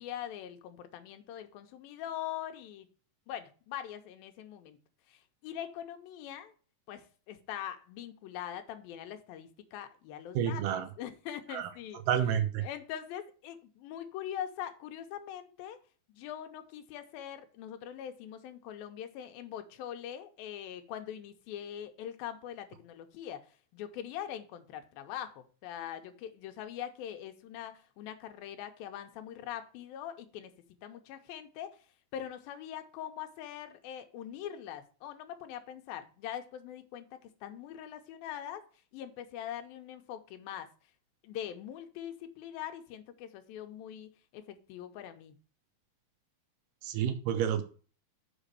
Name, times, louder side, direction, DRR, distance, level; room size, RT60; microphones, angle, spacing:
voice 1, 0.0-2.9 3.3-4.8 5.1-6.5 6.9-12.0 12.3-15.8 16.1-30.5 30.8-31.9 32.1-38.7 38.9-40.7 41.2-45.4, left 10 dB, 85° left, 7 dB, 2.7 m, -42 dB
voice 2, 10.4-10.9 11.5-11.7 12.1-12.6 46.8-47.6, right 9 dB, 80° right, 9 dB, 2.3 m, -29 dB
6.2 x 5.0 x 6.7 m, 0.39 s
omnidirectional pair, 4.1 m